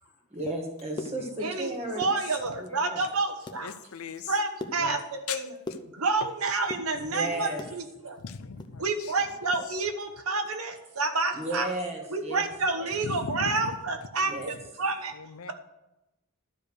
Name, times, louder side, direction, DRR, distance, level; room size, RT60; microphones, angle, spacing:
voice 1, 0.3-2.1 2.6-3.1 4.7-5.0 7.0-7.6 8.0-8.1 11.3-12.5 12.7-13.0 14.2-14.6, right 1 dB, 30° right, 1.9 m, -35 dB
sound 1, 0.7-1.6 1.9-2.7 3.1-3.6 4.0-6.3 6.6-7.8 8.2-9.7 10.0-10.1 10.4-10.6 11.0-11.3, left 2 dB, 20° left, 0.7 m, -41 dB
voice 2, 1.0-1.4 2.5-2.6 3.6-4.3 5.3-5.4 6.2-6.3 8.2-9.1 13.0-13.7 15.1-15.5, left 5 dB, 80° left, 0.7 m, -38 dB
voice 3, 2.0-3.7 4.3-5.5 5.9-8.2 8.8-11.7 12.1-15.1, right 3 dB, 80° right, 1.1 m, -29 dB
12.0 x 5.1 x 6.5 m
head